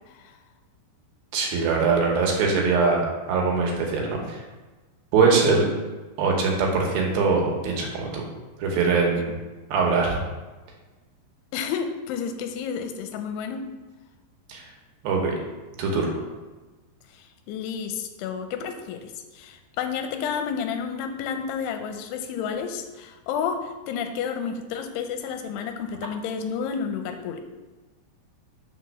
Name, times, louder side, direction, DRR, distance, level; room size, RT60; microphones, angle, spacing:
voice 1, 1.3-4.4 5.1-5.7 6.2-8.2 8.6-9.4 9.7-10.2 14.5-14.6 15.0-15.4 15.8-16.1, right 4 dB, 70° right, 0 dB, 2.5 m, -22 dB
voice 2, 11.5-13.6 17.1-27.4, left 7 dB, 80° left, 6 dB, 2.6 m, -31 dB
6.2 x 3.7 x 6.2 m, 1.2 s
omnidirectional pair, 5.0 m